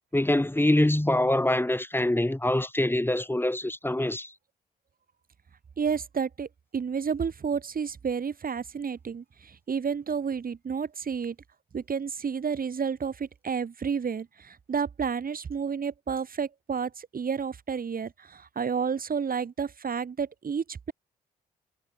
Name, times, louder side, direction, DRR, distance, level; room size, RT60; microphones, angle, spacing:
voice 1, 0.1-4.3, left 1 dB, 10° left, 3.2 m, -24 dB
voice 2, 5.8-11.3 11.7-20.9, right 6 dB, 50° right, 3.3 m, -31 dB
hypercardioid pair, 45°, 19 cm